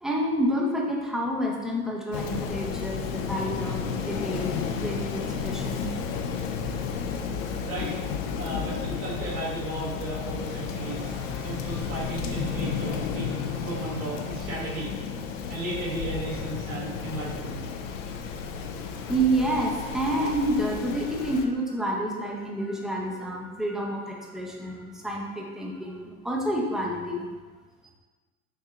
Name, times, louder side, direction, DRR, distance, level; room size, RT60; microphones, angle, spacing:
voice 1, 0.0-4.5 4.8-5.9 18.8-27.3, right 1 dB, ahead, -1 dB, 0.5 m, -29 dB
Rain, 2.1-21.4, left 6 dB, 65° left, 0.6 m, -32 dB
voice 2, 7.5-7.9 8.4-11.1 11.4-13.3 13.6-14.9 15.5-17.7, right 2 dB, 75° right, -7 dB, 1.3 m, -34 dB
sound 1, 10.8-15.3, left 6 dB, 45° right, 0.8 m, -42 dB
6.3 x 2.7 x 2.4 m, 1.3 s
hypercardioid pair, 85°, 43 cm